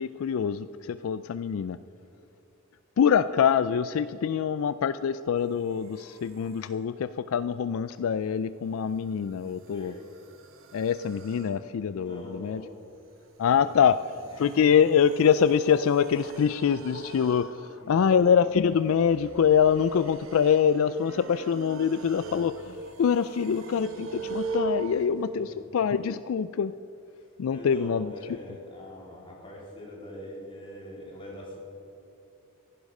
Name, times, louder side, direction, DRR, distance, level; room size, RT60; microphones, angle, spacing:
voice 1, 0.0-1.8 3.0-9.9 10.7-12.6 13.4-14.0 14.4-26.7 27.4-28.1, left 7 dB, 70° left, 14 dB, 0.3 m, -24 dB
sound 1, 5.7-6.8 8.8-25.1, right 3 dB, 65° right, 1.2 m, -41 dB
voice 2, 9.7-10.0 11.9-12.7 13.4-13.9 14.3-14.8 17.8-18.2 25.3-25.6 27.2-31.6, equal, 25° left, -4 dB, 3.6 m, -44 dB
15.0 x 11.5 x 5.4 m, 2.8 s
head